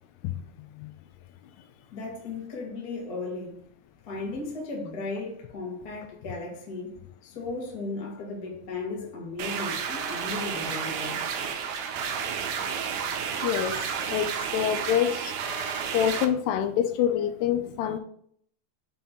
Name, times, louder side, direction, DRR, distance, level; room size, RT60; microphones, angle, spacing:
voice 1, 1.9-3.6 4.1-7.0 7.2-11.3, left 3 dB, 65° left, 0.9 m, -36 dB
sound 1, 9.4-16.3, right 7 dB, 90° right, 2.8 m, -31 dB
voice 2, 12.2-12.5 13.1-15.3 15.9-18.0, left 10 dB, 85° left, 2.5 m, -27 dB
7.5 x 2.8 x 5.3 m
omnidirectional pair, 4.9 m